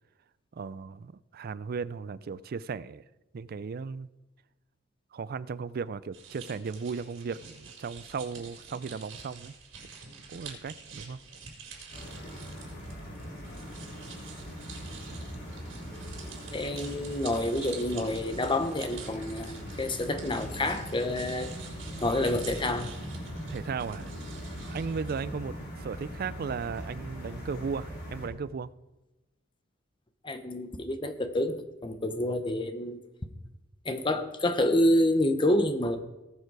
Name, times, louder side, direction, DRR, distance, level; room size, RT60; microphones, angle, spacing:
voice 1, 0.6-3.0 3.3-4.1 5.1-9.5 10.3-11.2 23.5-24.1 24.7-28.7, right 5 dB, 50° right, 0.4 m, -36 dB
sound 1, 6.1-25.2, right 5 dB, 85° right, 4.6 m, -48 dB
sound 2, 11.9-28.3, equal, 55° left, 4.2 m, -41 dB
voice 2, 16.5-21.5 22.0-22.9 30.2-33.0 33.8-36.0, left 1 dB, 25° left, 0.9 m, -28 dB
18.5 x 6.7 x 4.7 m
head